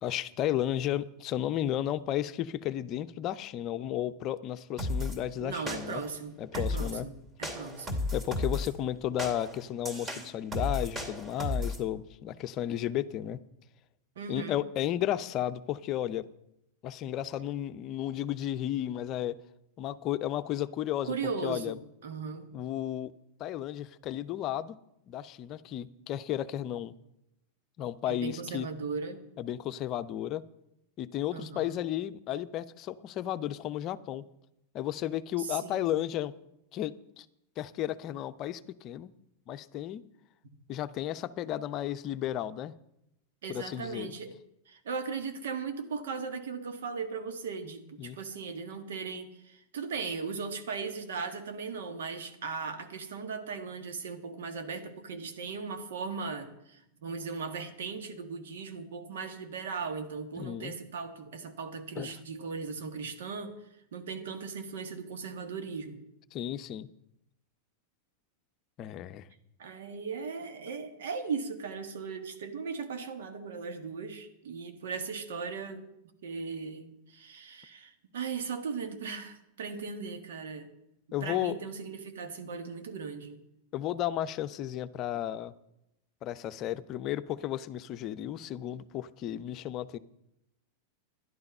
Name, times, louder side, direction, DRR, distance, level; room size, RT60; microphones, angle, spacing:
voice 1, 0.0-6.0 6.4-7.1 8.1-13.4 14.3-16.2 16.8-19.4 19.8-21.1 21.4-21.8 22.5-23.1 23.4-24.8 25.1-26.9 27.8-28.7 29.4-30.4 31.0-34.3 34.7-36.3 36.7-37.3 37.6-39.1 39.5-40.0 40.7-42.7 43.5-44.1 48.0-48.2 60.4-60.7 62.0-62.1 66.3-66.9 68.8-69.3 81.1-81.6 83.7-85.5 86.2-90.0, left 12 dB, 45° left, 13 dB, 0.6 m, -33 dB
sound 1, 4.8-5.2 5.7-6.1 6.5-7.0 7.4-8.7 9.2-11.8, left 2 dB, 20° right, 2.6 m, -33 dB
voice 2, 5.4-8.0 14.1-14.6 21.0-22.5 28.1-29.2 31.3-31.7 35.4-35.9 40.4-40.5 43.4-44.3 44.7-63.6 63.9-66.0 69.6-75.9 76.2-80.7 81.2-83.4, right 5 dB, 75° right, 7 dB, 1.7 m, -38 dB
12.0 x 11.0 x 5.4 m, 0.82 s
hypercardioid pair, 105°, 0 cm